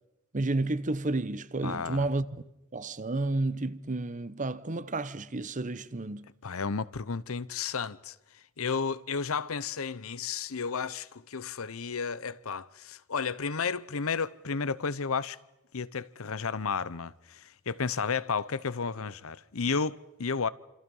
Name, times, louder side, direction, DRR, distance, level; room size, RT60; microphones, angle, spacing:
voice 1, 0.3-2.2 2.7-6.3, right 2 dB, 35° right, 0.9 m, -31 dB
voice 2, 1.6-2.1 6.4-8.2 8.6-15.4 15.7-20.5, left 5 dB, 70° left, 0.8 m, -32 dB
29.0 x 27.0 x 5.5 m
head